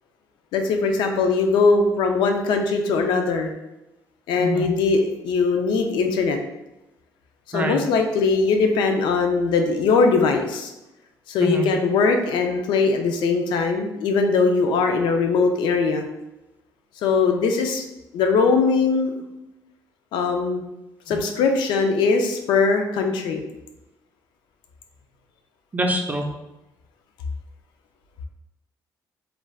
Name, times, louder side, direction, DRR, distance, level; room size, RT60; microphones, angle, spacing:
voice 1, 0.5-3.5 4.3-6.4 7.5-10.7 11.3-16.1 17.0-17.9 18.1-19.1 20.1-20.7 21.1-23.4, left 4 dB, 85° left, 4 dB, 0.4 m, -21 dB
voice 2, 25.7-26.2, right 1 dB, 20° right, 3 dB, 0.5 m, -25 dB
2.4 x 2.2 x 3.3 m, 0.94 s
cardioid pair, 85°, 8 cm